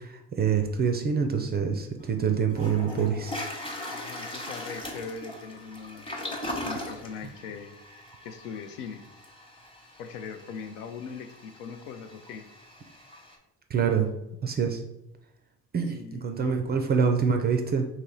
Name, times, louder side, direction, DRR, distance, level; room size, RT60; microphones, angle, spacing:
voice 1, 0.0-3.3 13.7-14.1 14.4-14.8 15.7-17.9, right 6 dB, 25° right, 4 dB, 0.3 m, -26 dB
Toilet flush, 2.0-2.1 2.5-13.3, left 1 dB, 10° left, 0.9 m, -40 dB
voice 2, 3.9-6.1 6.6-7.8 8.2-9.0 10.0-12.4 15.9-16.6, left 6 dB, 75° left, 8 dB, 0.5 m, -40 dB
3.0 x 2.9 x 3.8 m, 0.87 s
hypercardioid pair, 50°, 47 cm